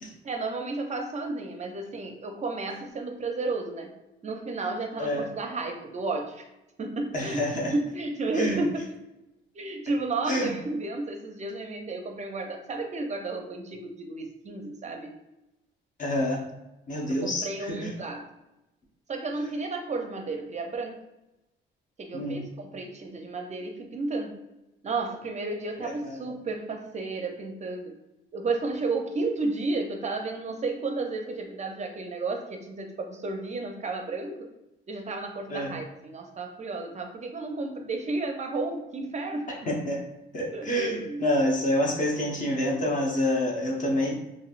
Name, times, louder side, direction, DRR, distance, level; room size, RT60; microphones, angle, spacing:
voice 1, 0.2-3.9 4.2-6.4 6.8-8.9 9.5-15.1 17.1-18.3 19.1-21.0 22.0-24.4 24.8-28.0 28.3-34.5 34.9-39.5 40.5-41.3, right 3 dB, 35° right, 4 dB, 0.5 m, -32 dB
voice 2, 7.1-7.7 8.3-8.6 10.3-10.5 16.0-16.4 16.9-17.9 22.1-22.5 25.8-26.2 35.5-35.8 39.5-40.0 40.3-44.2, left 1 dB, 40° left, -1 dB, 0.9 m, -27 dB
3.1 x 2.5 x 2.4 m, 0.94 s
cardioid pair, 90°, 20 cm